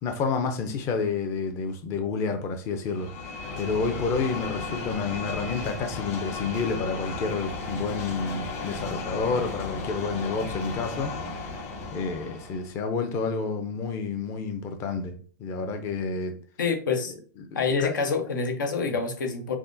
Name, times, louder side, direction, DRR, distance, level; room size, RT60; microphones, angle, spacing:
voice 1, 0.0-15.1 15.4-16.4 17.5-18.0 18.9-19.0, left 4 dB, 30° left, 6 dB, 0.5 m, -30 dB
sound 1, 2.9-12.7, left 3 dB, 45° left, 1.7 m, -35 dB
voice 2, 16.6-17.1 17.5-19.6, left 5 dB, 90° left, 5 dB, 1.0 m, -26 dB
5.8 x 2.1 x 2.6 m, 0.40 s
hypercardioid pair, 145°, 10 cm